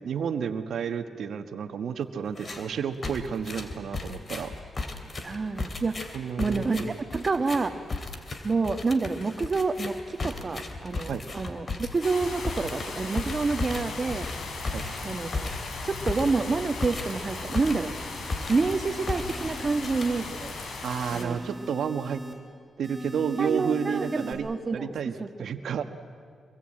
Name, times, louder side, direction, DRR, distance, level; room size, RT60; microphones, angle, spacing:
voice 1, 0.0-4.5 6.1-7.0 11.1-11.2 14.7-14.8 20.8-22.2 22.8-24.5 24.7-25.1 25.4-25.8, right 7 dB, 80° right, 8 dB, 1.5 m, -31 dB
sound 1, 2.3-2.7 3.0-18.0 18.3-18.8 19.1-20.5, left 3 dB, 45° left, 3.1 m, -35 dB
voice 2, 5.2-7.8 8.4-14.3 15.0-15.5 15.8-17.9 18.5-20.5 21.1-21.4 23.4-25.5, right 3 dB, 40° right, 9 dB, 1.6 m, -28 dB
sound 2, 12.0-21.2, left 3 dB, 70° left, 3.9 m, -37 dB
sound 3, 17.2-18.3 18.8-20.3 20.8-22.3 22.8-24.3, right 1 dB, 15° right, 7.1 m, -41 dB
25.0 x 22.0 x 8.9 m, 2.1 s
cardioid pair, 70°, 0 cm